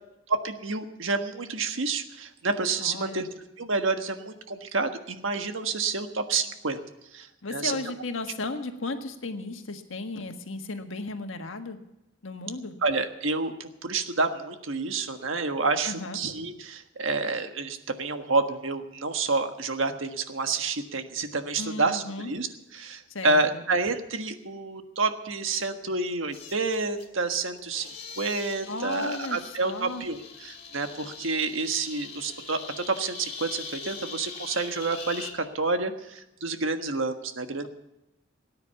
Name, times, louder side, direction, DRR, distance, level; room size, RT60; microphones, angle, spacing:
voice 1, 0.3-3.3 3.6-6.8 7.1-7.7 12.8-27.9 28.2-37.7, right 3 dB, 80° right, 6 dB, 1.5 m, -29 dB
voice 2, 2.8-3.2 7.4-11.8 12.2-12.7 15.8-16.2 21.6-22.3 23.1-23.6 28.7-30.0, left 3 dB, 80° left, 5 dB, 1.6 m, -35 dB
sound 1, 25.6-25.7 26.3-27.1 27.6-35.3, left 5 dB, 35° left, 2.7 m, -42 dB
18.0 x 9.6 x 7.0 m, 0.92 s
head